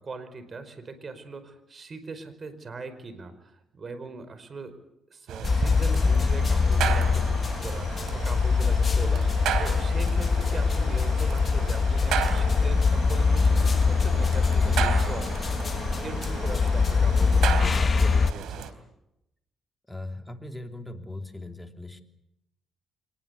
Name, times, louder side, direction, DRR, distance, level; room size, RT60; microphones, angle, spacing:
voice 1, 0.0-4.7 5.1-18.7, right 4 dB, 40° right, 11 dB, 4.9 m, -40 dB
sound 1, 5.3-18.7, right 8 dB, 85° right, 3.2 m, -34 dB
sound 2, 5.4-18.3, left 5 dB, 40° left, 1.0 m, -23 dB
voice 2, 19.9-22.0, left 2 dB, 5° left, 5 dB, 3.1 m, -39 dB
26.0 x 20.5 x 8.3 m, 0.84 s
cardioid pair, 90°, 0 cm